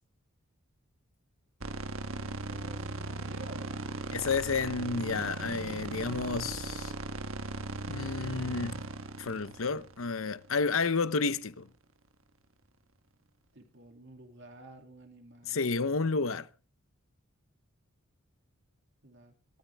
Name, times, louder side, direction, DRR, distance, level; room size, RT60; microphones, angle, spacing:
sound 1, 1.6-10.8, right 2 dB, 70° right, 1.3 m, -38 dB
voice 1, 2.1-4.0 13.5-15.9 19.0-19.3, right 2 dB, 55° right, 2.5 m, -51 dB
voice 2, 4.1-6.9 7.9-8.8 9.2-11.7 15.5-16.5, left 4 dB, 70° left, 0.8 m, -31 dB
22.5 x 13.5 x 3.5 m
head